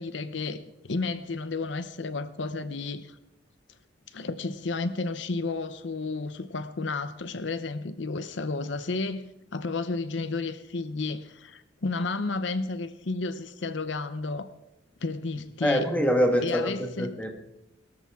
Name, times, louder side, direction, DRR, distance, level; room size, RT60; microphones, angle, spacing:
voice 1, 0.0-3.2 4.1-14.5 15.0-15.9 16.4-17.2, left 3 dB, 70° left, 0.7 m, -32 dB
voice 2, 15.6-17.3, equal, 5° left, 1.6 m, -25 dB
22.0 x 13.0 x 3.6 m
head